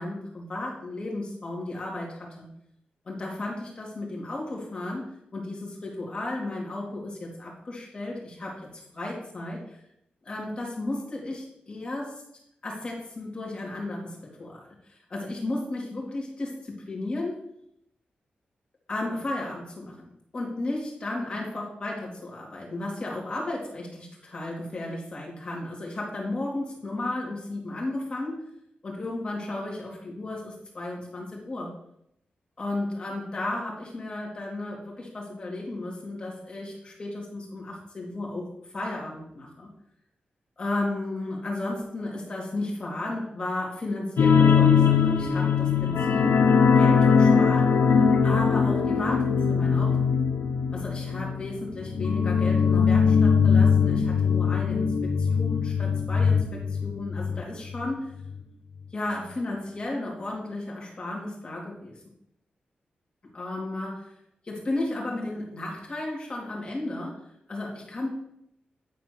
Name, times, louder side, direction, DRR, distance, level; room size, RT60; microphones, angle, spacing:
voice 1, 0.0-2.5 3.1-5.0 5.3-9.6 10.2-12.1 12.6-14.6 14.9-17.4 18.9-28.4 28.8-31.7 32.6-38.4 38.7-39.7 40.6-46.4 46.8-47.8 48.2-50.0 50.7-58.1 58.9-62.0 63.3-64.1 64.4-67.2 67.5-68.1, left 2 dB, 30° left, -3 dB, 2.3 m, -34 dB
sound 1, 44.2-57.4 57.7-57.9 58.3-58.4, left 6 dB, 80° left, 0.9 m, -21 dB
9.5 x 4.2 x 6.0 m, 0.77 s
wide cardioid pair, 170°, 3 cm